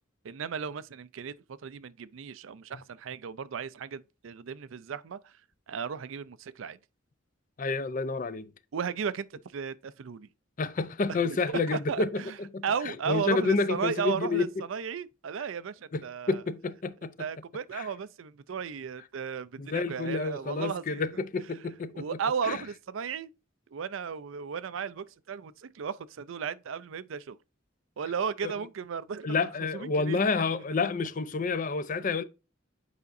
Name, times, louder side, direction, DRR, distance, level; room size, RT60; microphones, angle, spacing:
voice 1, 0.2-1.3 1.6-5.4 5.7-6.8 8.7-10.3 11.1-12.4 12.6-16.4 17.2-21.0 21.9-23.3 23.7-27.4 28.0-30.2, right 6 dB, 75° right, 0.4 m, -35 dB
voice 2, 7.6-8.5 10.6-12.6 13.1-14.5 15.9-17.1 17.7-17.9 19.6-22.1 22.4-22.6 28.4-28.5 29.2-32.2, left 4 dB, 40° left, 0.5 m, -29 dB
8.3 x 5.0 x 2.6 m
head